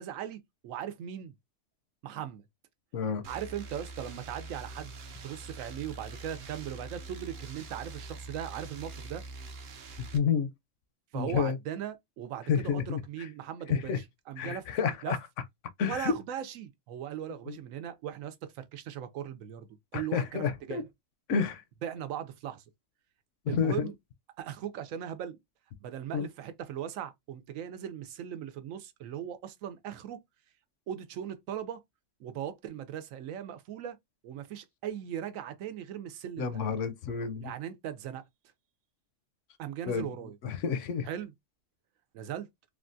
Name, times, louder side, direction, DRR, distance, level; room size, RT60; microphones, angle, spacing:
voice 1, 0.0-1.3 2.0-2.4 3.3-4.9 5.2-9.2 11.1-13.9 14.3-14.7 15.0-15.2 15.9-20.9 21.8-22.6 23.5-23.9 24.4-25.4 25.8-30.2 30.9-31.8 32.2-34.0 34.2-36.6 37.4-38.2 39.6-40.4 41.0-41.3 42.1-42.5, right 10 dB, 85° right, 1.0 m, -39 dB
voice 2, 2.9-3.2 10.0-10.5 11.1-11.6 12.5-13.3 13.7-14.0 14.4-15.2 15.8-16.1 17.5-17.6 19.9-20.8 21.3-21.6 23.5-23.9 26.1-26.3 36.4-37.5 39.9-40.1 40.4-41.1, left 6 dB, 75° left, 0.9 m, -30 dB
sound 1, 3.2-10.2, right 3 dB, 60° right, 0.7 m, -44 dB
3.4 x 2.2 x 2.5 m
omnidirectional pair, 1.4 m